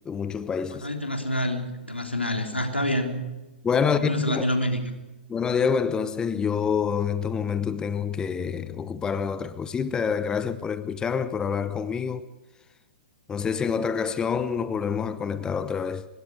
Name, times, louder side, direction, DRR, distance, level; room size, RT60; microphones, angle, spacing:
voice 1, 0.1-0.9 3.6-4.4 5.3-12.2 13.3-16.1, left 6 dB, 10° left, 0.8 m, -27 dB
voice 2, 0.7-3.1 3.9-4.9, left 1 dB, 90° left, 3.8 m, -27 dB
25.0 x 21.5 x 4.9 m
figure-of-eight pair, 115°, 6 cm